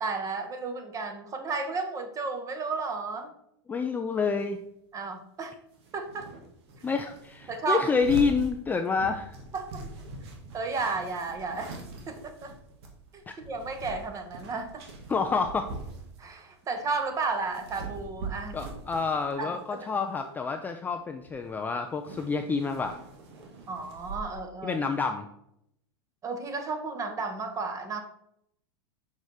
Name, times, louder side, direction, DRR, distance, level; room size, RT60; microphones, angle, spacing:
voice 1, 0.0-3.3 4.9-5.5 5.9-6.3 7.5-7.9 9.5-9.8 10.5-11.7 12.1-12.5 13.1-14.8 16.2-18.6 19.4-19.9 23.7-24.8 26.2-28.0, right 4 dB, 20° right, 7 dB, 1.0 m, -33 dB
voice 2, 3.7-4.6 6.8-9.4 13.3-13.4 15.1-15.7 18.5-23.0 24.6-25.3, left 5 dB, 10° left, 5 dB, 0.4 m, -28 dB
sound 1, 4.4-4.5 5.7-16.4 16.8-19.4 19.7-20.0 20.9-21.0 21.2-21.6 21.9-24.2, right 3 dB, 65° right, 1.6 m, -43 dB
6.4 x 4.7 x 4.1 m, 0.76 s
supercardioid pair, 135°, 14 cm